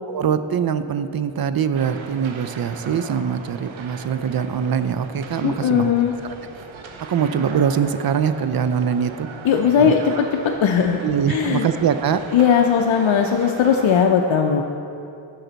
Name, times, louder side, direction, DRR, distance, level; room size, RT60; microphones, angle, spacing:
voice 1, 0.1-5.9 7.1-9.3 9.8-9.9 11.0-12.2, right 7 dB, 50° right, 11 dB, 0.5 m, -22 dB
sound 1, 1.7-14.0, right 4 dB, 75° right, 0.8 m, -38 dB
voice 2, 5.4-6.1 9.4-11.0 11.3-11.7 12.3-14.6, left 7 dB, 70° left, 2 dB, 0.6 m, -18 dB
10.5 x 6.6 x 4.0 m, 2.6 s
cardioid pair, 70°, 47 cm